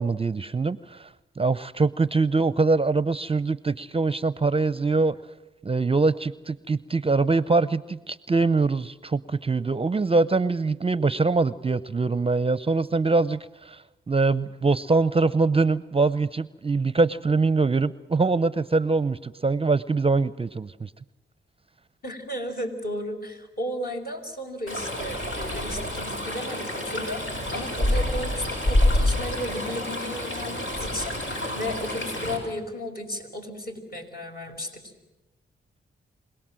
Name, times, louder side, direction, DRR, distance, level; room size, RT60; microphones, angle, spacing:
voice 1, 0.0-5.2 5.6-20.9, right 3 dB, 25° right, 17 dB, 0.7 m, -23 dB
voice 2, 22.0-34.9, equal, 45° left, 2 dB, 5.2 m, -34 dB
Stream, 24.7-32.4, left 1 dB, 70° left, 6.6 m, -27 dB
26.5 x 18.0 x 7.6 m, 1.0 s
cardioid pair, 50°, 21 cm